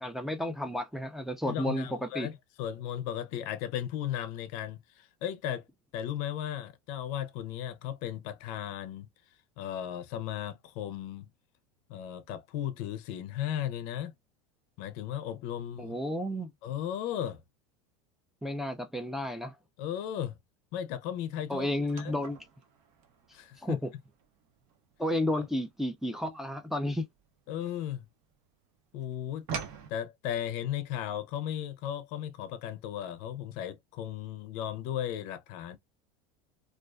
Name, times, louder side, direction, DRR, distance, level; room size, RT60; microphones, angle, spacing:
voice 1, 0.0-1.9 2.1-2.3 15.8-16.5 18.4-19.5 21.5-22.4 23.6-23.9 25.0-27.0, left 1 dB, ahead, 0.4 m, -32 dB
voice 2, 1.5-5.6 5.9-9.1 9.6-11.3 11.9-14.1 14.8-16.0 16.6-17.4 19.8-20.4 20.7-22.2 23.3-23.8 25.3-25.5 27.5-28.0 28.9-29.5 29.9-35.8, left 10 dB, 60° left, 0.5 m, -36 dB
sound 1, 21.9-28.3 28.6-29.9, right 6 dB, 60° right, 0.7 m, -44 dB
2.4 x 2.1 x 2.4 m
supercardioid pair, 110°, 15 cm